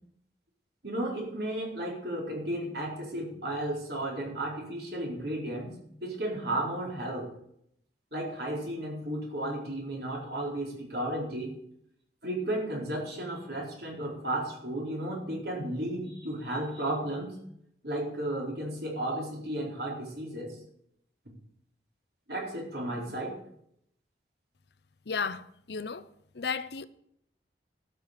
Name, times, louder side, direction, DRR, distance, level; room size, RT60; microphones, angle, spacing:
voice 1, 0.8-5.7 6.0-7.3 8.1-11.5 12.2-17.4 17.8-20.5 22.3-23.4, right 1 dB, 65° right, 4.4 m, -33 dB
voice 2, 25.1-26.1 26.3-26.9, left 5 dB, 75° left, 0.7 m, -34 dB
12.5 x 6.9 x 8.4 m
head